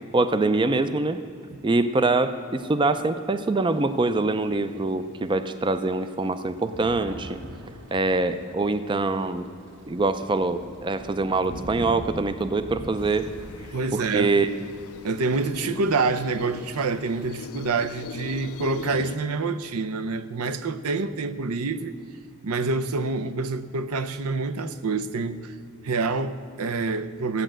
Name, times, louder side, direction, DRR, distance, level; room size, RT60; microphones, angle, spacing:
voice 1, 0.1-1.2 1.6-7.4 7.9-9.4 9.9-13.3 13.9-14.5, right 3 dB, 20° right, 11 dB, 0.4 m, -24 dB
Thunder, 3.7-5.0 5.5-5.6 5.9-13.7, equal, 55° right, 1.1 m, -41 dB
sound 1, 13.0-19.2, left 6 dB, 75° left, 0.4 m, -40 dB
voice 2, 13.7-14.3 15.0-21.9 22.4-25.5 25.8-27.4, right 3 dB, 85° right, 12 dB, 0.7 m, -27 dB
14.0 x 8.9 x 7.5 m, 2.5 s
head